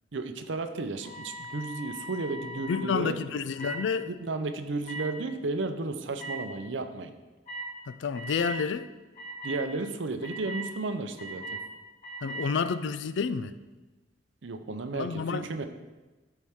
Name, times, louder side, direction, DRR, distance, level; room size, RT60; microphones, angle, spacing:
voice 1, 0.1-3.2 4.0-7.1 9.4-11.6 14.4-15.7, right 3 dB, 70° right, 0.7 m, -33 dB
sound 1, 1.0-2.8 3.6-3.8 4.8-5.0 6.2-6.3 7.5-7.7 8.1-8.6 9.1-9.6 10.2-10.6 11.2-11.6 12.0-12.4, right 2 dB, 35° left, 2.9 m, -39 dB
voice 2, 2.7-4.1 7.9-8.9 12.2-13.5 14.9-15.5, left 5 dB, 70° left, 0.4 m, -29 dB
12.5 x 4.5 x 3.6 m
head